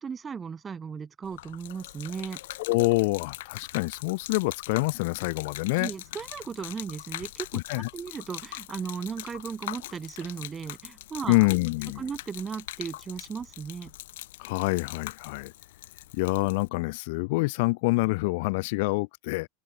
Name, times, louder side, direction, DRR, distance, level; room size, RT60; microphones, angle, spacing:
voice 1, 0.0-2.4 5.8-11.4 12.0-13.9, right 6 dB, 15° right, 2.3 m, -36 dB
Gurgling / Liquid, 1.2-16.7, left 16 dB, 75° left, 4.4 m, -42 dB
voice 2, 2.7-5.9 7.5-7.9 11.3-12.0 14.4-15.5 16.1-19.5, left 25 dB, 60° left, 1.2 m, -26 dB
open air
supercardioid pair, 150°, 0 cm